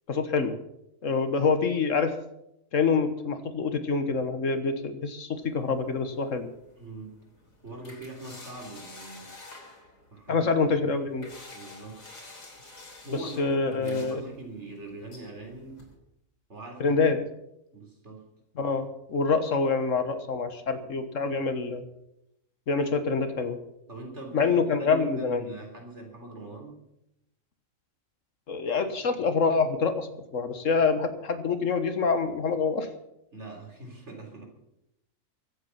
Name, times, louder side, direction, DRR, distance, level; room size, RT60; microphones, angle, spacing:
voice 1, 0.1-0.6 1.0-2.1 2.7-6.5 10.3-11.3 13.1-14.2 16.8-17.2 18.6-21.8 22.7-23.6 24.3-25.4 28.5-32.9, left 4 dB, 70° left, 9 dB, 1.6 m, -26 dB
sound 1, 5.4-15.9, left 2 dB, 85° left, 3.8 m, -50 dB
voice 2, 6.8-7.1 7.6-9.3 10.1-10.9 11.5-12.0 13.0-15.8 16.5-17.3 17.7-18.2 23.9-26.8 33.3-34.4, right 2 dB, 55° right, 2 dB, 3.8 m, -42 dB
23.5 x 8.1 x 5.8 m, 0.84 s
omnidirectional pair, 1.4 m